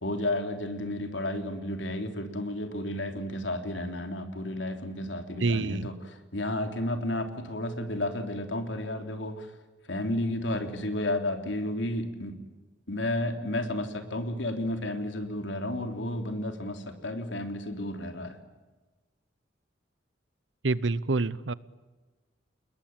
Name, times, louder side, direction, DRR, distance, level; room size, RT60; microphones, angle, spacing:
voice 1, 0.0-9.5 9.9-12.3 12.9-18.4, left 1 dB, 80° left, 6 dB, 3.4 m, -32 dB
voice 2, 5.4-5.9 20.6-21.5, right 3 dB, 75° right, 19 dB, 0.9 m, -27 dB
28.5 x 21.0 x 8.9 m, 1.2 s
head